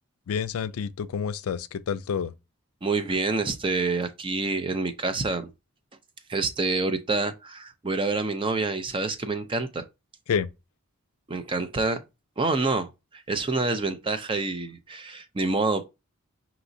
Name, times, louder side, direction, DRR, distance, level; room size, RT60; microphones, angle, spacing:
voice 1, 0.3-2.3 10.3-10.5, left 7 dB, 75° left, 0.4 m, -28 dB
voice 2, 2.8-5.5 6.3-9.8 11.3-12.0 12.4-15.8, right 3 dB, 25° right, 0.4 m, -27 dB
5.9 x 2.9 x 2.6 m
head